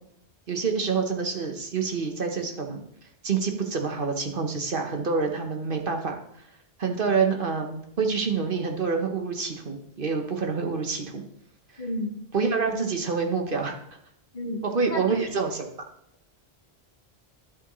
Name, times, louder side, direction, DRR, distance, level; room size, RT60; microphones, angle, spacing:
voice 1, 0.5-2.8 3.2-6.2 6.8-11.2 11.7-11.8 12.3-13.8 14.7-15.7, right 5 dB, 55° right, 3 dB, 1.3 m, -27 dB
voice 2, 11.8-12.2 14.3-15.0, left 1 dB, 45° left, 3 dB, 1.4 m, -32 dB
12.0 x 7.7 x 3.1 m, 0.72 s
omnidirectional pair, 1.1 m